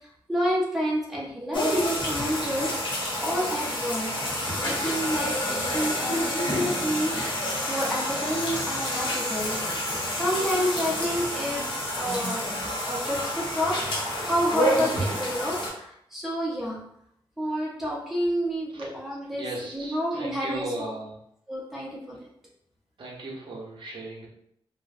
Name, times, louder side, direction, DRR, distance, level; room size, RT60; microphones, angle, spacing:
voice 1, 0.0-4.1 4.6-7.2 7.7-11.7 11.9-12.4 12.9-16.8 17.4-19.5 19.7-20.9 21.5-22.2, equal, 5° right, -5 dB, 0.6 m, -29 dB
sound 1, 1.5-15.7, equal, 55° left, 0.9 m, -29 dB
voice 2, 19.3-21.1 23.0-24.3, right 2 dB, 55° right, -3 dB, 0.6 m, -37 dB
2.5 x 2.0 x 2.5 m, 0.72 s
wide cardioid pair, 125°, 10 cm